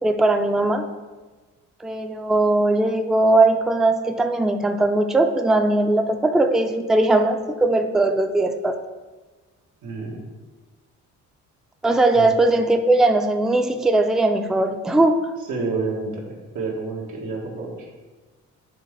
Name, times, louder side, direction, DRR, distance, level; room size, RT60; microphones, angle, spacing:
voice 1, 0.0-0.9 1.8-8.8 11.8-15.3, right 2 dB, ahead, 6 dB, 0.4 m, -19 dB
voice 2, 9.8-10.2 12.1-12.3 15.5-17.9, right 3 dB, 90° right, -2 dB, 1.6 m, -29 dB
8.8 x 3.7 x 3.2 m, 1.3 s
cardioid pair, 90°, 30 cm